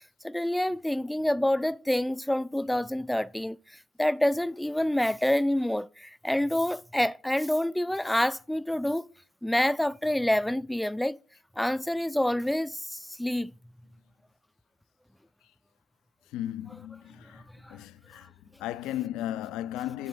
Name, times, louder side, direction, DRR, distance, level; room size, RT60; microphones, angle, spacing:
voice 1, 0.2-3.6 4.0-9.1 9.4-11.2 11.6-13.5 17.6-17.8, left 1 dB, 5° left, 0.3 m, -27 dB
voice 2, 16.3-17.4 17.7-18.3 18.6-20.1, left 12 dB, 80° left, 0.3 m, -35 dB
9.4 x 4.2 x 5.5 m
supercardioid pair, 75°, 0 cm